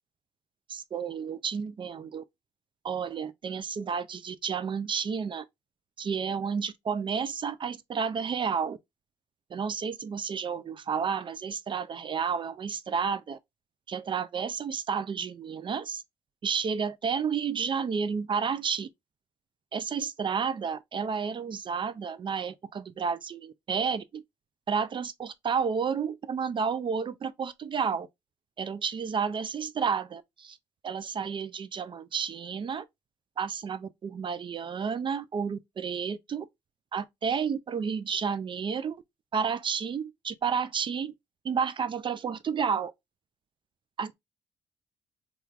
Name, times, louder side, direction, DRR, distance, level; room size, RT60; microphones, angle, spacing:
voice 1, 0.7-2.2 2.8-5.4 6.0-8.8 9.5-13.4 13.9-16.0 16.4-18.9 19.7-24.2 24.7-28.1 28.6-30.6 30.8-32.8 33.4-36.5 36.9-39.0 39.3-41.1 41.4-42.9 44.0-44.2, right 6 dB, 40° right, 0.4 m, -31 dB
3.1 x 2.3 x 2.3 m
supercardioid pair, 60°, 13 cm